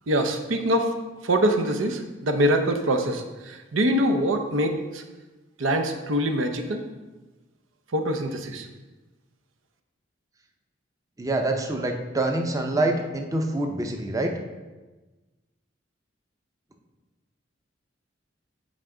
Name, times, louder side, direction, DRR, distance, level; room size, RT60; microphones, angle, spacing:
voice 1, 0.1-0.9 1.2-5.0 5.6-6.8 7.9-8.7, right 1 dB, 85° right, 5 dB, 0.7 m, -24 dB
voice 2, 11.2-14.3, right 2 dB, 20° right, 4 dB, 0.6 m, -26 dB
8.1 x 4.9 x 3.8 m, 1.2 s
head